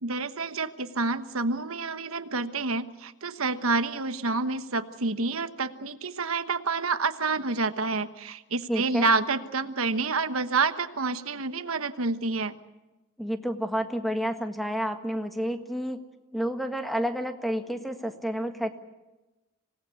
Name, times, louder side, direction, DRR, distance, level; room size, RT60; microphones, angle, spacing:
voice 1, 0.0-12.5, right 3 dB, 90° right, 10 dB, 1.3 m, -28 dB
voice 2, 8.7-9.1 13.2-16.0 16.3-18.7, equal, ahead, 6 dB, 1.6 m, -30 dB
26.5 x 18.5 x 8.3 m, 1.1 s
head